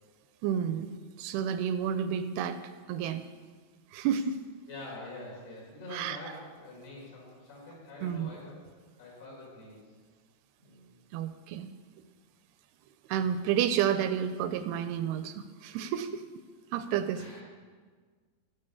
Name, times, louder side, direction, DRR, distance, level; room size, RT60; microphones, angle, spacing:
voice 1, 0.4-2.6 2.9-3.3 3.9-4.4 5.9-6.2 8.0-8.3 11.1-11.7 13.1-16.3 16.7-17.2, right 8 dB, 85° right, 11 dB, 2.5 m, -30 dB
voice 2, 4.7-8.6 9.0-9.8 10.6-10.9 17.1-17.4, left 2 dB, 70° left, -4 dB, 5.8 m, -45 dB
16.0 x 6.0 x 6.9 m, 1.5 s
omnidirectional pair, 4.6 m